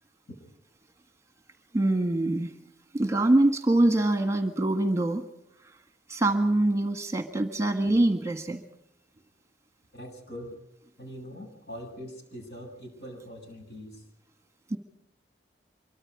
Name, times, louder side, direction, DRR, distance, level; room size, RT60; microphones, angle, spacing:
voice 1, 1.7-2.5 2.9-5.2 5.6-5.8 6.1-8.6 14.7-14.8, right 1 dB, 15° right, 7 dB, 1.5 m, -24 dB
voice 2, 9.9-10.6 11.0-14.0, equal, 60° left, 4 dB, 7.2 m, -42 dB
25.0 x 23.5 x 4.9 m, 0.77 s
head